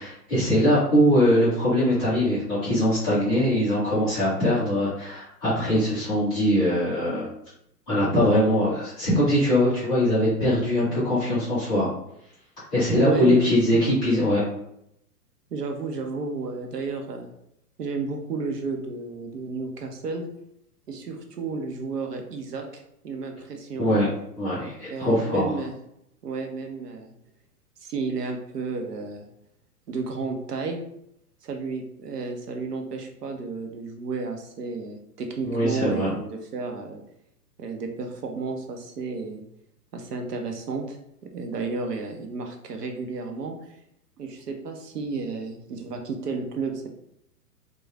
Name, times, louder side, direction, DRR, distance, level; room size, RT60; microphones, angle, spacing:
voice 1, 0.0-7.3 7.9-11.9 12.7-14.4 23.8-24.1 24.4-25.5 35.4-36.1, equal, 5° left, -16 dB, 0.3 m, -22 dB
voice 2, 13.0-13.8 15.5-17.3 17.8-20.3 20.9-24.0 24.9-25.7 26.2-27.1 27.8-29.2 29.9-30.8 31.4-37.0 37.6-39.4 39.9-41.0 41.2-43.5 44.2-46.9, right 4 dB, 75° right, 4 dB, 0.7 m, -32 dB
3.1 x 2.3 x 2.3 m, 0.75 s
figure-of-eight pair, 115°, 48 cm